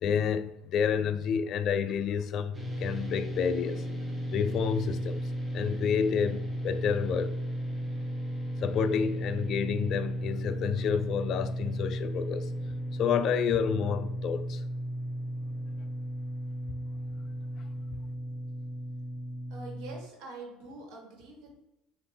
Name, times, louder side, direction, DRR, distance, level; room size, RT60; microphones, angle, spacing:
voice 1, 0.0-3.9 4.3-5.2 5.5-7.4 8.6-12.5 13.0-14.6, left 7 dB, 50° left, 0.3 m, -29 dB
sound 1, 2.5-20.0, right 1 dB, 10° right, 0.8 m, -35 dB
voice 2, 19.5-21.6, right 2 dB, 70° right, 1.4 m, -45 dB
5.3 x 2.5 x 3.4 m
cardioid pair, 125°, 0 cm